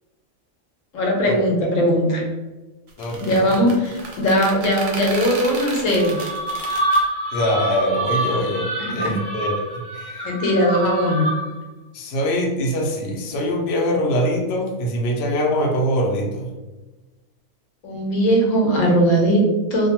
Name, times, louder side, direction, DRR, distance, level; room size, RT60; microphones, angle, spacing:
voice 1, 0.9-2.2 3.2-6.2 9.0-9.1 10.2-11.3 17.8-19.9, equal, 80° left, 0 dB, 1.0 m, -19 dB
sound 1, 2.9-7.0, right 3 dB, 60° right, 0.7 m, -33 dB
voice 2, 3.0-3.6 7.3-9.6 9.9-10.2 11.9-16.5, equal, 65° left, -1 dB, 0.7 m, -23 dB
sound 2, 5.9-11.6, right 1 dB, 25° left, 0.8 m, -26 dB
2.5 x 2.1 x 2.8 m, 1.2 s
omnidirectional pair, 1.4 m